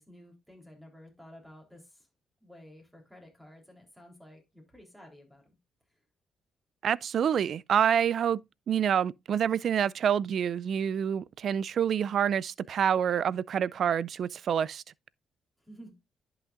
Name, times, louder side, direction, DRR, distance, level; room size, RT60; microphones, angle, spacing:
voice 1, 0.0-2.1 2.4-5.6 15.6-15.9, equal, 5° right, 3.5 m, -52 dB
voice 2, 6.8-8.4 8.7-14.8, right 8 dB, 60° right, 0.3 m, -27 dB
10.5 x 5.8 x 2.5 m
cardioid pair, 90°, 0 cm